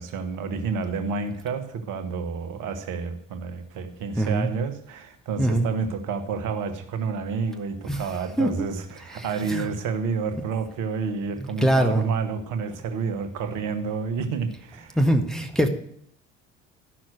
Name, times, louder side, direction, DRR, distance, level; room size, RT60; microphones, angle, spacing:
voice 1, 0.0-15.0, right 5 dB, 55° right, 9 dB, 1.4 m, -29 dB
voice 2, 4.2-4.5 5.4-5.7 7.9-8.0 8.4-8.7 9.1-9.6 11.6-12.0 14.9-15.7, right 1 dB, ahead, 2 dB, 1.5 m, -22 dB
12.5 x 6.1 x 6.3 m, 0.69 s
hypercardioid pair, 60°, 36 cm